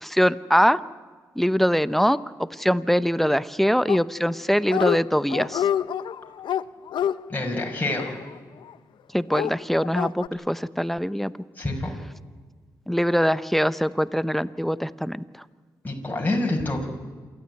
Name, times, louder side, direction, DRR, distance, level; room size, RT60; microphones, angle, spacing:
voice 1, 0.0-0.8 1.4-5.7 9.1-11.3 12.9-15.2, equal, 5° left, 16 dB, 0.8 m, -23 dB
Dog, 3.9-4.4 4.6-5.0 5.3-8.7 9.3-10.3, left 9 dB, 75° left, 0.6 m, -28 dB
voice 2, 7.3-8.1 11.6-11.9 15.8-16.8, left 2 dB, 20° left, 0 dB, 5.6 m, -26 dB
27.5 x 13.0 x 9.3 m, 1.5 s
supercardioid pair, 50°, 8 cm